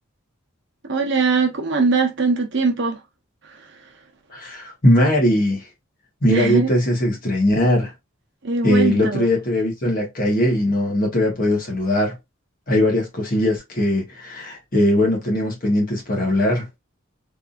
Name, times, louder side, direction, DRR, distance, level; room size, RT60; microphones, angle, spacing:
voice 1, 0.9-3.0 3.4-3.9 6.3-6.7 8.4-9.3, right 4 dB, 60° right, 0.8 m, -21 dB
voice 2, 4.3-5.6 6.2-7.9 8.6-12.2 12.7-16.7, left 1 dB, 45° left, 1.3 m, -20 dB
3.5 x 2.6 x 2.5 m
head